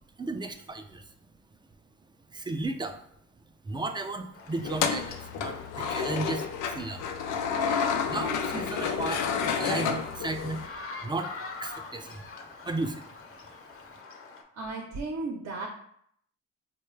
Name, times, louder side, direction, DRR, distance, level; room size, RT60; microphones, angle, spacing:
voice 1, 0.2-1.1 2.3-3.0 3.6-7.1 8.1-9.2 9.5-10.6 11.0-11.3 11.6-12.2 12.6-13.0, right 2 dB, 15° right, 7 dB, 0.3 m, -34 dB
sound 1, 4.3-14.4, left 4 dB, 45° left, 0.6 m, -45 dB
sound 2, 4.6-10.7, left 6 dB, 90° left, 0.5 m, -30 dB
voice 2, 14.5-15.7, right 3 dB, 55° right, 1 dB, 0.7 m, -34 dB
4.4 x 2.2 x 3.1 m, 0.67 s
cardioid pair, 90°, 30 cm